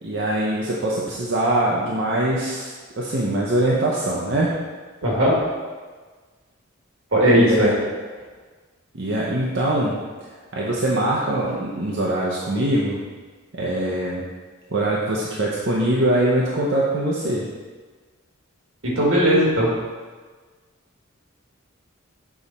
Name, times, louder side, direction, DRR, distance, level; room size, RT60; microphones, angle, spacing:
voice 1, 0.0-4.5 7.4-7.7 8.9-10.0 10.5-13.0 13.5-14.2 14.7-17.4, right 1 dB, 55° right, -4 dB, 0.7 m, -23 dB
voice 2, 5.0-5.4 7.1-7.7 18.8-19.7, equal, 80° right, -4 dB, 2.1 m, -17 dB
7.1 x 4.2 x 4.1 m, 1.4 s
head